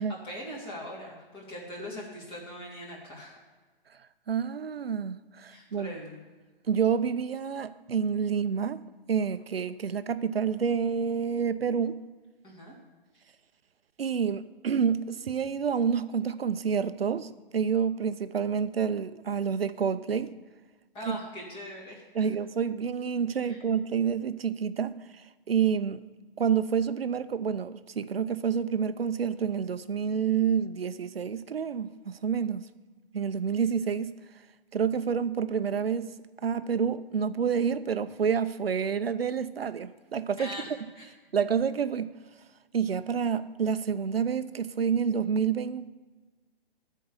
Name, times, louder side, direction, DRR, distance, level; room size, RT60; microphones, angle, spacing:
voice 1, 0.0-3.4 5.5-6.2 12.4-12.7 20.9-22.0 23.4-23.6 40.4-41.0, equal, 20° left, 2.8 m, -41 dB
voice 2, 4.3-5.9 6.7-12.0 14.0-20.3 21.1-21.2 22.1-25.0 25.5-26.0 26.4-32.7 33.1-34.1 34.7-36.2 36.4-40.5 41.3-42.1 42.7-45.9, right 7 dB, 90° right, 0.6 m, -28 dB
14.0 x 4.7 x 6.9 m
hypercardioid pair, 135°, 29 cm